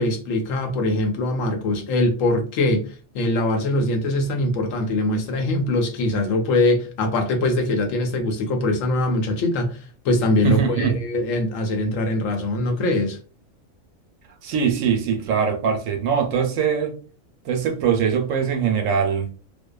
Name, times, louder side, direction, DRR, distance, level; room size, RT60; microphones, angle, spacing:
voice 1, 0.0-9.8 10.0-13.2, left 2 dB, 75° left, 1.0 m, -22 dB
voice 2, 10.4-11.0 14.4-16.9 17.5-19.3, right 7 dB, 75° right, 0.9 m, -22 dB
2.5 x 2.2 x 2.2 m
omnidirectional pair, 1.4 m